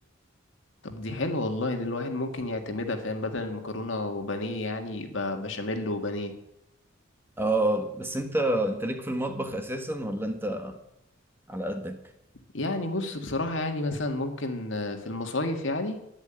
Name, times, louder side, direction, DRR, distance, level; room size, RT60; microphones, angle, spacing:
voice 1, 0.8-6.3 12.5-16.0, left 2 dB, 65° left, 5 dB, 2.0 m, -31 dB
voice 2, 7.4-10.8 11.5-12.0, right 1 dB, 10° right, 6 dB, 1.4 m, -28 dB
11.5 x 10.5 x 9.0 m, 0.81 s
head